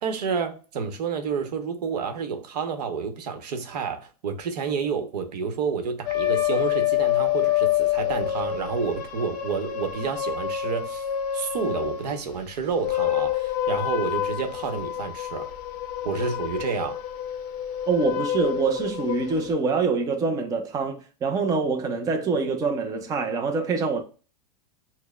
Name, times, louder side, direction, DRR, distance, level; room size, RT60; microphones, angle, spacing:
voice 1, 0.0-11.0 11.3-15.5 16.0-17.0, right 6 dB, 80° right, 0.9 m, -29 dB
sound 1, 6.1-12.1 12.7-19.5, left 11 dB, 40° left, 0.5 m, -27 dB
voice 2, 17.9-24.0, right 4 dB, 15° right, 0.5 m, -25 dB
6.2 x 2.1 x 2.2 m
supercardioid pair, 140°, 20 cm